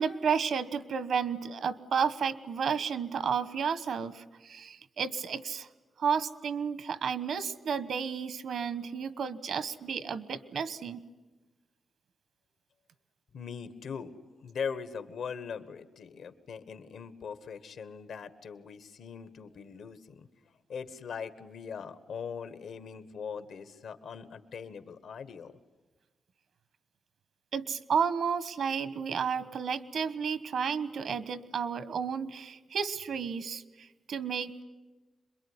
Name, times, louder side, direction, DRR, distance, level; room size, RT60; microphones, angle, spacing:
voice 1, 0.0-5.7 6.0-11.0 27.5-34.6, right 6 dB, 75° right, 14 dB, 1.2 m, -32 dB
voice 2, 13.3-14.1 14.4-20.3 20.7-25.5, left 6 dB, 80° left, 11 dB, 1.5 m, -41 dB
26.5 x 22.5 x 9.8 m, 1.2 s
cardioid pair, 105°, 0 cm